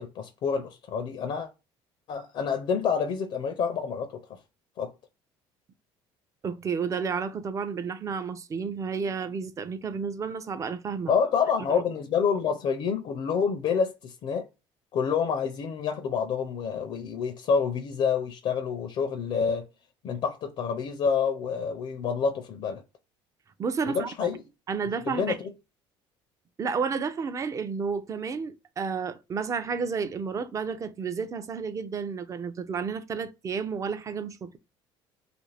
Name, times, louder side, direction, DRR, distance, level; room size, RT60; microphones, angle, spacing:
voice 1, 0.0-1.5 2.1-4.4 4.8-4.9 11.1-14.5 14.9-19.7 20.0-22.8 23.9-24.4 25.1-25.4, left 6 dB, 55° left, 0.4 m, -28 dB
voice 2, 6.4-11.1 11.7-11.8 23.6-24.3 24.7-25.4 26.6-34.6, right 5 dB, 30° right, 0.4 m, -31 dB
2.5 x 2.4 x 3.2 m
cardioid pair, 105°, 11 cm